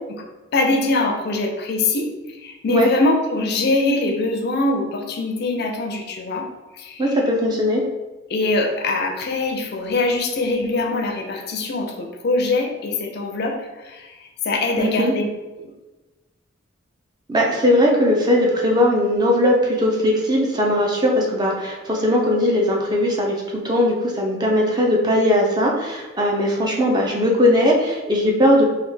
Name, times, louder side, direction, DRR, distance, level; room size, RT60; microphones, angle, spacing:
voice 1, 0.5-6.5 6.7-7.1 8.3-15.3 15.6-15.7, left 2 dB, 50° left, 3 dB, 0.4 m, -23 dB
voice 2, 7.0-7.8 14.8-15.1 17.3-28.6, left 1 dB, 20° right, -1 dB, 0.4 m, -19 dB
3.3 x 2.2 x 3.2 m, 1.2 s
head